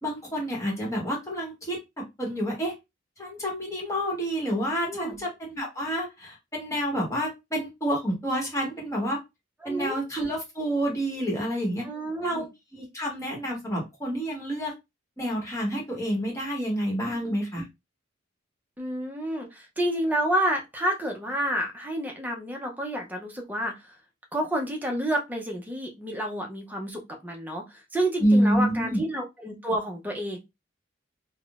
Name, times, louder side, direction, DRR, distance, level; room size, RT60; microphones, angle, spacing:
voice 1, 0.0-2.7 3.2-9.2 9.6-11.9 12.2-12.5 12.7-14.7 15.2-17.6 28.2-29.0, equal, 15° left, -2 dB, 1.1 m, -28 dB
voice 2, 4.9-5.2 9.6-10.0 11.8-12.4 17.0-17.4 18.8-23.7 24.3-30.4, right 1 dB, 10° right, 1 dB, 0.6 m, -29 dB
3.5 x 2.1 x 2.4 m, 0.22 s
head